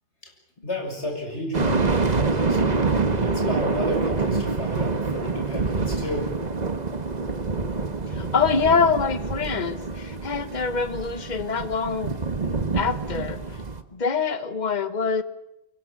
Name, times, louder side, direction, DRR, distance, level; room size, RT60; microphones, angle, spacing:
voice 1, 0.6-2.8 3.2-6.3, left 1 dB, 85° left, 2 dB, 7.1 m, -31 dB
sound 1, 1.5-13.8, right 4 dB, 40° right, 1.5 m, -26 dB
voice 2, 8.1-12.2 12.7-13.6 13.9-15.2, left 5 dB, 40° left, 12 dB, 1.4 m, -25 dB
26.0 x 23.0 x 7.6 m, 0.85 s
omnidirectional pair, 1.1 m